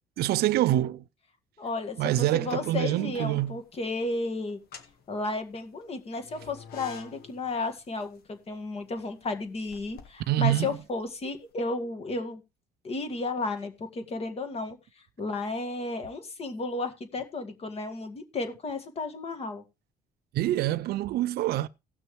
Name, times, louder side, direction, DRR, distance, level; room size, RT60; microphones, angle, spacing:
voice 1, 0.2-1.0 2.0-3.6 10.3-10.7 20.3-21.7, right 14 dB, 70° right, 0.5 m, -26 dB
voice 2, 1.6-4.6 5.1-12.4 12.8-14.8 15.2-19.6, left 3 dB, 35° left, 1.9 m, -33 dB
sound 1, 3.1-3.8 4.5-11.4, left 6 dB, 65° left, 1.5 m, -49 dB
18.0 x 6.2 x 3.2 m
cardioid pair, 110°, 17 cm